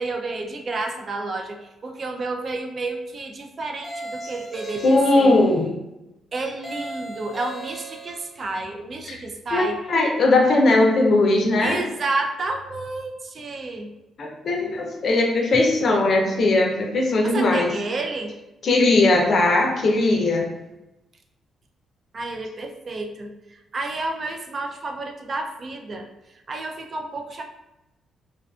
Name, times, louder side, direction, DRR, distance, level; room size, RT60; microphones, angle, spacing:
voice 1, 0.0-5.3 6.3-9.8 11.6-13.9 17.2-18.3 22.1-26.1 26.5-27.4, right 2 dB, 40° right, 4 dB, 0.3 m, -30 dB
sound 1, 3.8-5.6 6.6-8.4, right 2 dB, 5° left, 0.6 m, -37 dB
voice 2, 4.8-5.7 9.1-9.2 9.5-11.8 14.2-17.7 18.6-20.5, left 2 dB, 55° left, 1 dB, 0.5 m, -19 dB
2.4 x 2.4 x 2.3 m, 0.95 s
cardioid pair, 100°, 0 cm